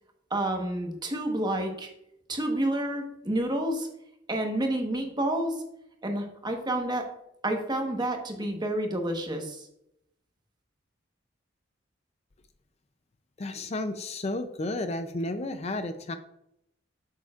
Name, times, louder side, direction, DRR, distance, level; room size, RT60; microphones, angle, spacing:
voice 1, 0.3-1.9 2.3-3.9 4.3-5.6 6.0-7.1 7.4-9.7, right 1 dB, 20° right, 3 dB, 1.2 m, -29 dB
voice 2, 13.4-16.1, left 2 dB, 35° left, 9 dB, 0.5 m, -32 dB
8.7 x 7.0 x 2.4 m, 0.77 s
head